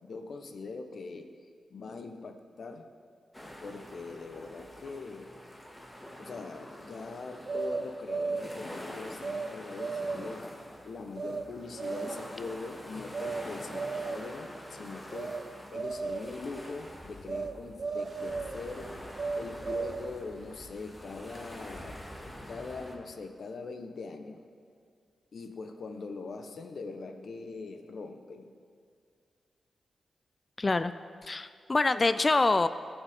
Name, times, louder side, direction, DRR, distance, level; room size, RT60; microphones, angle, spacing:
voice 1, 0.0-1.4 1.7-2.9 3.6-5.3 6.2-10.5 10.8-15.4 15.7-19.0 19.4-22.1 22.5-24.4 25.3-28.5, left 4 dB, 70° left, 6 dB, 0.9 m, -42 dB
sound 1, 3.3-23.0, equal, 15° left, 1.8 m, -46 dB
sound 2, 7.5-8.6 9.2-9.5 9.8-10.4 11.2-11.4 11.8-12.3 13.1-13.4 13.7-14.4 15.1-15.4 15.7-16.3 17.3-17.5 17.8-18.6 19.2-20.2, right 4 dB, 55° right, 0.6 m, -35 dB
voice 2, 30.6-30.9 31.2-32.7, left 3 dB, 35° left, 12 dB, 0.3 m, -25 dB
17.5 x 7.3 x 3.5 m, 2.2 s
cardioid pair, 65°, 0 cm